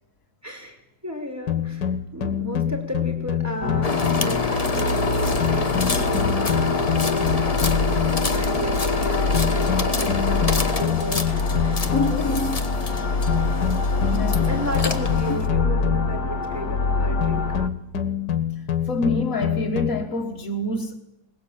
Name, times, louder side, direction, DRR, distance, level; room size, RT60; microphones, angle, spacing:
voice 1, 0.4-0.8 1.0-11.9 14.5-17.5, right 1 dB, 10° right, 4.9 m, -34 dB
sound 1, 1.5-4.5 5.4-8.4 9.3-12.3 13.3-16.3 17.2-19.9, left 10 dB, 90° left, 2.0 m, -26 dB
sound 2, 3.6-17.7, left 3 dB, 70° left, 1.8 m, -25 dB
sound 3, 3.8-15.5, left 4 dB, 25° left, 1.2 m, -27 dB
voice 2, 11.9-12.6 14.1-14.6 15.3-15.4 18.9-21.0, left 2 dB, 50° left, 1.9 m, -26 dB
21.0 x 21.0 x 8.7 m
omnidirectional pair, 1.8 m